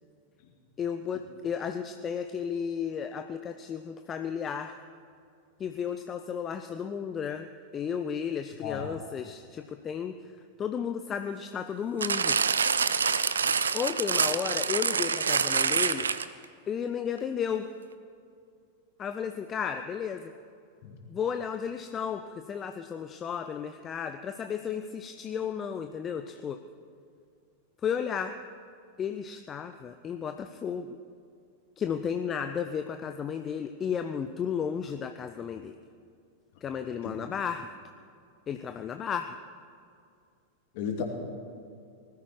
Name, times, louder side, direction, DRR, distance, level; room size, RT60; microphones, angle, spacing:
voice 1, 0.8-4.8 5.6-7.5 7.7-10.2 10.6-12.4 13.7-16.1 16.7-17.7 19.0-20.3 21.1-26.6 27.8-28.4 29.0-31.0 31.8-35.8 36.6-37.7 38.5-39.4, left 7 dB, 25° left, 8 dB, 0.6 m, -33 dB
voice 2, 8.6-8.9 20.8-20.9 37.0-37.1 40.7-41.0, left 7 dB, 50° left, 2 dB, 2.5 m, -33 dB
sound 1, 12.0-16.4 17.2-17.3, right 6 dB, 70° right, 0.6 m, -26 dB
20.0 x 13.5 x 4.7 m, 2.3 s
figure-of-eight pair, 90°, 0 cm